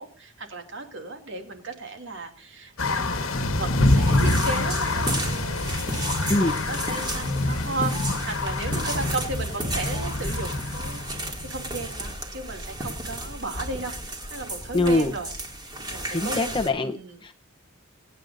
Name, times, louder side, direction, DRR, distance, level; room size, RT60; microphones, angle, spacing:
voice 1, 0.0-13.9 14.3-15.3 15.9-17.2, right 3 dB, 60° right, 4 dB, 2.7 m, -35 dB
sound 1, 2.8-11.9, left 2 dB, 70° left, 1.4 m, -26 dB
sound 2, 3.8-16.7, right 1 dB, 20° right, 2.4 m, -34 dB
voice 2, 14.7-15.1 16.1-16.9 17.2-17.4, left 2 dB, 20° left, 6 dB, 0.8 m, -23 dB
24.0 x 9.4 x 2.6 m, 0.33 s
head